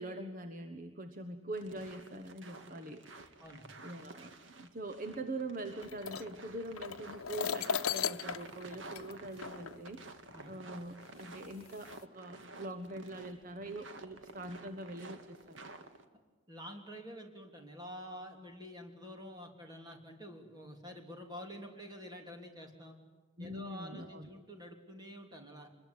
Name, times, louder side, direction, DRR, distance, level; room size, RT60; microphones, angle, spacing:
voice 1, 0.0-3.3 3.8-10.1 10.4-15.6 23.4-24.3, right 1 dB, 40° right, 8 dB, 1.3 m, -43 dB
sound 1, 1.5-16.0, right 2 dB, 60° right, 1.9 m, -52 dB
voice 2, 3.4-3.7 10.3-10.5 16.5-22.9 23.4-25.7, equal, 20° right, 3 dB, 3.2 m, -48 dB
sound 2, 5.8-10.0 10.9-11.0 11.6-12.0, left 7 dB, 90° left, 0.8 m, -37 dB
25.0 x 21.5 x 9.7 m, 1.4 s
head